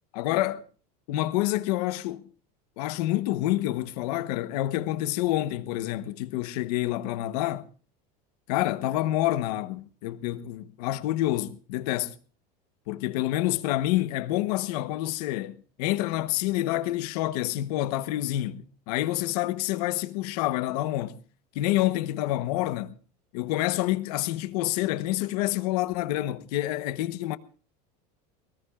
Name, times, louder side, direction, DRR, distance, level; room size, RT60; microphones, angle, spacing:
voice 1, 0.1-0.6 1.1-2.3 2.8-7.6 8.5-12.1 12.9-21.2 21.5-22.9 23.3-27.4, left 15 dB, 75° left, 1.1 m, -28 dB
21.5 x 19.5 x 2.4 m
supercardioid pair, 140°, 20 cm